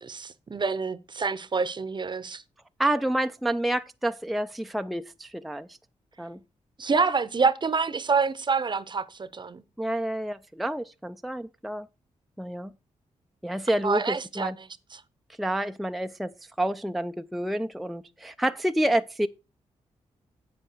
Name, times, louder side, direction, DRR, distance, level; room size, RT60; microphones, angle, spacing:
voice 1, 0.0-2.4 6.8-9.6 13.8-14.5 14.9-15.0, right 4 dB, 40° right, 0.7 m, -27 dB
voice 2, 2.8-5.7 6.2-6.4 9.8-11.9 12.4-12.7 13.4-14.6 15.4-16.3 16.6-19.3, right 1 dB, ahead, 0.4 m, -28 dB
8.6 x 8.0 x 4.5 m
cardioid pair, 70°, 12 cm